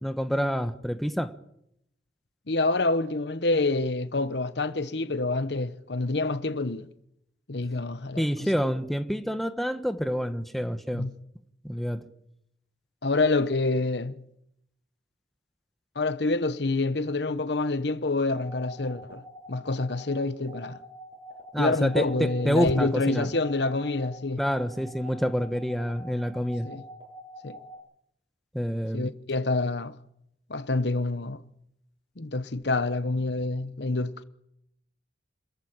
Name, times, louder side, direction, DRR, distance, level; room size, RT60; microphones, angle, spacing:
voice 1, 0.0-1.3 8.2-11.1 11.6-12.0 21.5-23.3 24.4-26.7 28.5-29.1, equal, ahead, 1.2 m, -27 dB
voice 2, 2.5-6.9 7.5-8.3 11.0-11.1 13.0-14.1 15.9-19.2 19.5-20.8 21.6-24.4 26.6-26.8 27.4-27.6 28.9-30.0 30.5-31.4 32.2-34.1, left 3 dB, 70° left, 1.1 m, -27 dB
sound 1, 18.3-27.8, left 1 dB, 30° right, 6.6 m, -47 dB
27.0 x 14.5 x 8.9 m
head